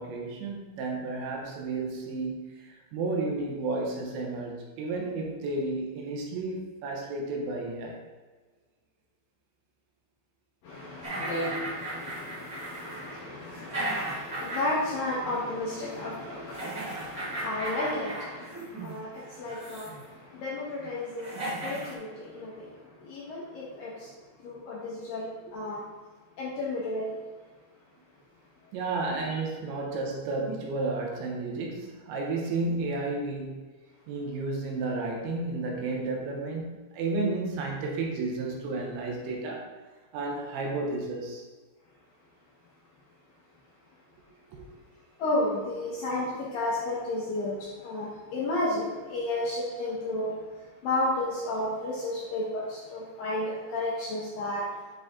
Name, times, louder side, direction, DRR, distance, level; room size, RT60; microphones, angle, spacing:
voice 1, 0.0-8.0 25.5-25.6 28.7-33.6 34.1-39.7 40.1-41.4 44.5-44.7, right 3 dB, 80° right, 0 dB, 3.2 m, -32 dB
voice 2, 10.6-24.1 24.4-25.8 26.4-27.2 45.2-54.7, left 1 dB, 75° left, -6 dB, 2.2 m, -33 dB
sound 1, 11.0-14.9 15.2-15.4 16.5-18.9 19.4-20.0 20.8-20.9 21.2-21.9, right 1 dB, 30° right, 1.6 m, -36 dB
9.4 x 4.0 x 3.7 m, 1.4 s
omnidirectional pair, 5.2 m